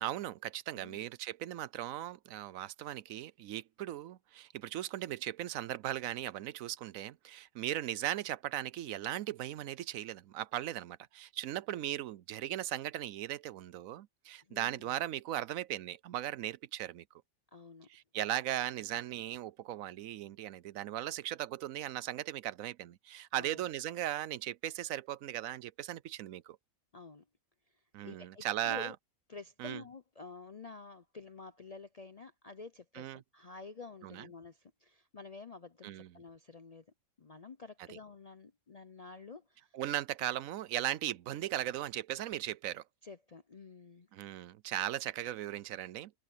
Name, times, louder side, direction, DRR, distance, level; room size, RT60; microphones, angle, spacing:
voice 1, 0.0-17.0 17.9-26.6 27.9-28.9 29.6-29.8 32.9-33.2 34.0-34.3 35.8-36.1 39.7-42.8 44.1-46.1, right 13 dB, 75° right, 1.0 m, -38 dB
voice 2, 0.7-1.1 14.5-14.9 17.5-17.9 23.4-23.6 26.9-27.2 28.0-29.0 29.3-36.9 37.2-39.8 43.0-44.1, left 4 dB, 45° left, 0.5 m, -50 dB
omnidirectional pair, 1.5 m